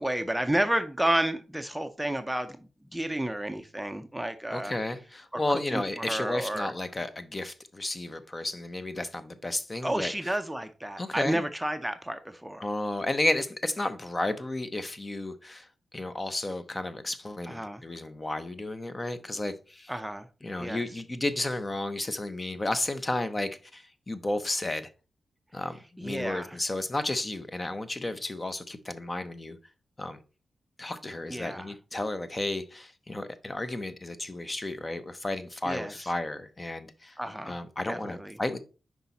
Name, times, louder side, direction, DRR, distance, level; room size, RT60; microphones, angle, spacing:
voice 1, 0.0-4.7 5.3-6.7 9.8-12.6 17.5-17.8 19.9-20.3 20.6-20.8 26.0-26.6 31.3-31.7 35.6-35.9 37.2-37.6 37.9-38.4, right 1 dB, 5° right, 0.5 m, -31 dB
voice 2, 4.5-10.3 11.0-11.5 12.6-15.7 15.9-19.9 20.4-24.9 25.5-29.6 30.0-30.2 30.8-37.2 37.4-38.6, left 2 dB, 25° left, 0.7 m, -32 dB
5.6 x 4.7 x 4.0 m
cardioid pair, 70°, 0 cm